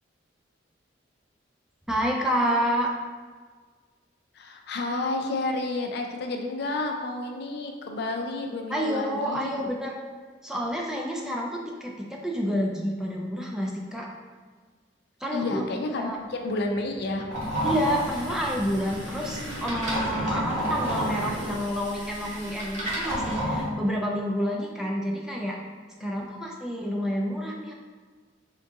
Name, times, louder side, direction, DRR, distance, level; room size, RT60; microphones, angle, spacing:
voice 1, 1.9-2.9 8.7-10.0 10.4-14.1 15.2-15.6 16.0-16.2 17.6-25.6 26.0-27.7, equal, 5° right, -2 dB, 0.3 m, -29 dB
voice 2, 4.3-9.6 15.3-17.3 26.0-26.4, left 2 dB, 60° left, 3 dB, 0.4 m, -31 dB
sound 1, 16.4-21.6, equal, 85° right, 1.3 m, -38 dB
sound 2, 17.3-23.7, equal, 40° right, 1.0 m, -31 dB
3.6 x 2.7 x 3.5 m, 1.5 s
head